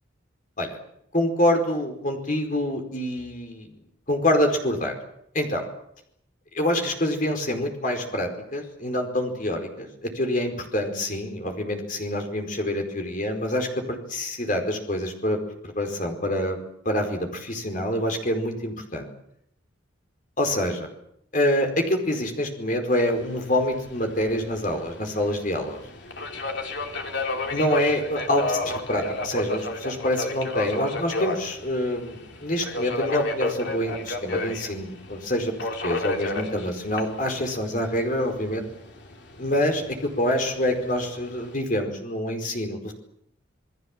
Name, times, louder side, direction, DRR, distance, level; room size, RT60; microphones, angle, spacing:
voice 1, 1.1-3.7 4.1-4.9 5.3-5.6 6.5-15.4 15.6-16.6 16.8-19.1 20.4-20.9 21.3-25.8 27.5-35.5 35.8-38.6 39.4-42.9, left 1 dB, 40° left, 4 dB, 4.8 m, -26 dB
Subway metro underground, 23.1-41.5, left 2 dB, 60° left, 3.1 m, -33 dB
28.5 x 20.0 x 7.5 m, 0.74 s
head